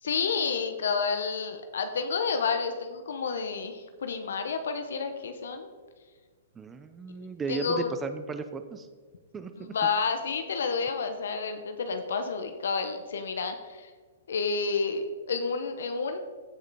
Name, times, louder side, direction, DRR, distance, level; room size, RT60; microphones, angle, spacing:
voice 1, 0.0-5.7 7.5-7.9 9.6-13.9 14.3-16.2, left 5 dB, 75° left, 7 dB, 0.9 m, -30 dB
voice 2, 6.6-8.9 9.3-9.7, right 4 dB, 15° right, 9 dB, 0.6 m, -35 dB
15.5 x 5.2 x 4.1 m, 1.5 s
hypercardioid pair, 130°, 0 cm